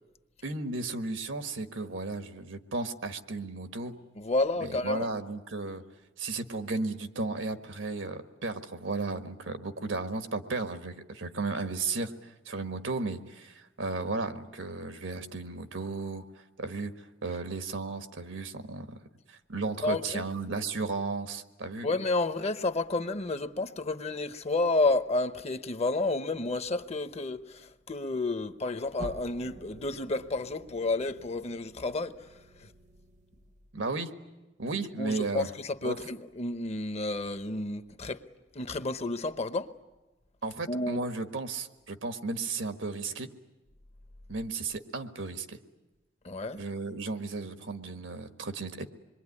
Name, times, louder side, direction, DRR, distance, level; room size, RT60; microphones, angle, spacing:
voice 1, 0.4-3.9 4.6-5.8 6.2-16.9 17.2-19.0 19.3-21.9 33.7-34.1 34.6-35.5 35.8-36.0 40.4-43.3 44.3-45.6 46.6-48.8, right 3 dB, 80° right, 1.6 m, -34 dB
voice 2, 4.1-5.1 19.8-20.3 21.8-32.2 32.6-32.7 35.0-38.2 38.5-39.7 40.7-41.0 46.2-46.6, left 2 dB, 35° left, 0.9 m, -31 dB
sound 1, 29.0-33.8, right 2 dB, 40° right, 0.8 m, -48 dB
26.5 x 22.5 x 9.8 m
head